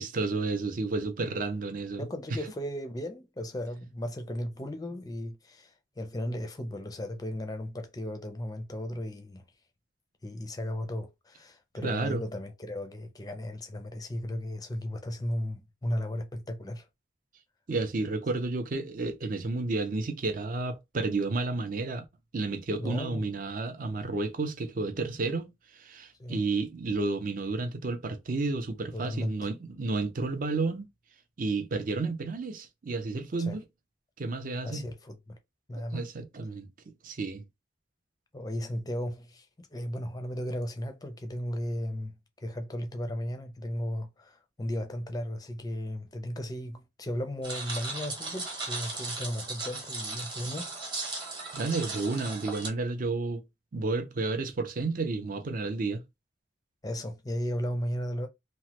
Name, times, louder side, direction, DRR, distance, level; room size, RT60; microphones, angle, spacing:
voice 1, 0.0-2.1 11.8-12.2 17.7-22.0 22.3-30.9 31.4-33.6 34.2-34.9 35.8-37.4 51.5-53.4 53.7-56.0, right 3 dB, 45° right, 0.5 m, -31 dB
voice 2, 1.9-9.4 10.2-16.9 22.8-23.3 26.2-26.4 28.9-29.5 33.4-33.6 34.6-35.4 35.7-36.0 38.3-42.1 42.4-50.7 56.8-58.3, equal, 20° left, 0.5 m, -35 dB
sound 1, 47.4-52.7, right 3 dB, 25° right, 1.0 m, -37 dB
3.0 x 2.1 x 2.9 m
head